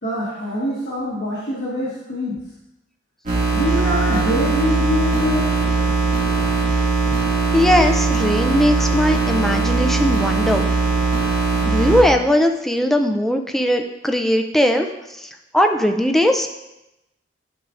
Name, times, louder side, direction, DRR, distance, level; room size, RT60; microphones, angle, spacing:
voice 1, 0.0-2.4 3.5-5.5, left 1 dB, 65° left, -8 dB, 1.5 m, -24 dB
sound 1, 3.3-12.0, right 3 dB, 45° right, 2.1 m, -20 dB
voice 2, 7.5-10.7 11.7-14.9 15.2-16.5, equal, ahead, 4 dB, 0.4 m, -19 dB
11.0 x 4.9 x 2.5 m, 0.92 s
head